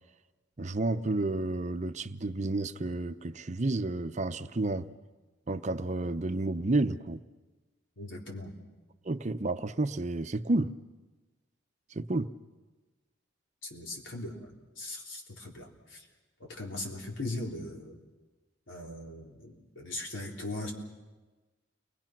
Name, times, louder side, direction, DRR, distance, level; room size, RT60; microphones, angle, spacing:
voice 1, 0.6-4.9 5.5-7.2 9.0-10.7 11.9-12.3, right 2 dB, 35° right, 0.7 m, -31 dB
voice 2, 8.0-8.6 13.6-16.1 16.4-18.0 18.7-20.7, left 2 dB, 80° left, 3.9 m, -40 dB
29.5 x 21.5 x 6.0 m
head